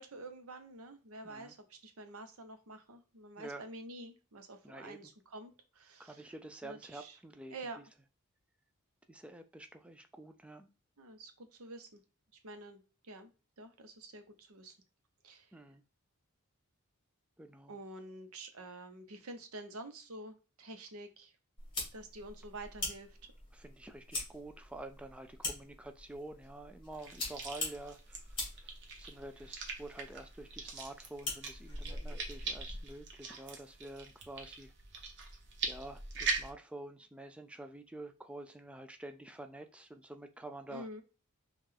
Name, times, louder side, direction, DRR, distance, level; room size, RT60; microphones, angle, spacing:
voice 1, 0.0-6.3 6.6-7.2 7.5-7.8 11.0-12.0 12.4-13.3 13.6-14.7 15.2-15.5 17.7-21.3 21.9-23.2 40.7-41.0, right 2 dB, 85° right, 8 dB, 0.8 m, -48 dB
voice 2, 4.6-5.0 6.0-7.8 9.1-10.7 15.5-15.8 17.4-17.8 23.5-28.2 28.6-34.7 35.6-40.9, right 2 dB, 5° right, 7 dB, 0.3 m, -48 dB
sound 1, 21.6-33.0, left 2 dB, 25° left, 2.4 m, -44 dB
sound 2, 26.9-36.5, right 4 dB, 55° right, 0.9 m, -42 dB
5.5 x 2.4 x 3.4 m, 0.33 s
head